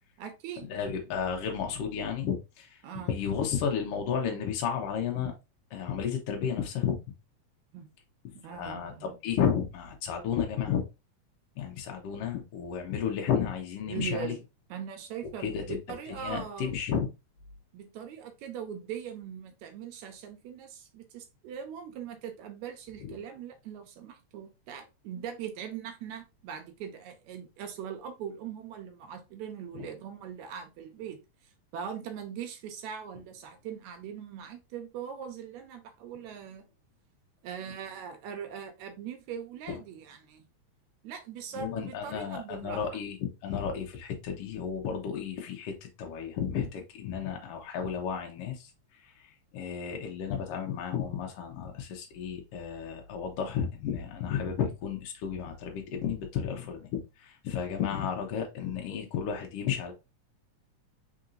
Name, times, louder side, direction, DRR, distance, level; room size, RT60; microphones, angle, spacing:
voice 1, 0.2-0.7 2.8-3.1 7.7-7.9 8.4-9.2 13.8-14.4 14.7-16.7 17.7-31.2 31.7-36.6 37.4-40.5 41.0-42.8, right 8 dB, 80° right, 1.9 m, -41 dB
voice 2, 0.7-2.7 3.1-5.3 5.7-7.0 8.5-8.9 9.2-10.8 11.6-14.3 15.4-15.8 16.1-17.1 29.7-29.9 39.7-39.8 41.5-43.2 43.4-48.7 49.5-59.9, left 7 dB, 75° left, 1.4 m, -32 dB
4.3 x 3.8 x 2.5 m
omnidirectional pair, 3.4 m